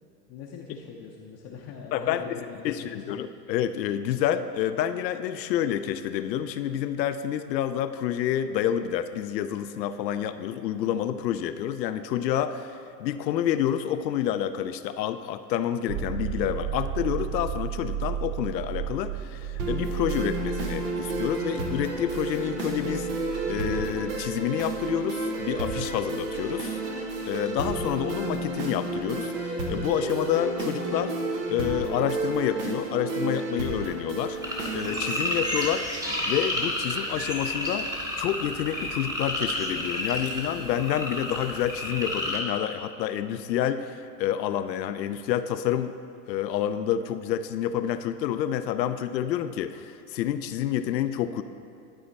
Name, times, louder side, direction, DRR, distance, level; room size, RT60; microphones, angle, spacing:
voice 1, 0.3-3.1, left 6 dB, 30° left, -2 dB, 0.6 m, -42 dB
voice 2, 1.9-26.8 27.2-31.2 31.5-37.9 38.2-45.9 46.3-51.4, left 10 dB, 80° left, 10 dB, 0.5 m, -28 dB
sound 1, 15.9-29.4 32.1-32.2, right 9 dB, 45° right, 0.6 m, -36 dB
sound 2, 19.6-35.6, right 2 dB, 75° right, 1.3 m, -31 dB
sound 3, 34.4-42.4, left 1 dB, 5° right, 1.1 m, -31 dB
11.5 x 4.2 x 4.0 m, 2.4 s
hypercardioid pair, 110°, 50 cm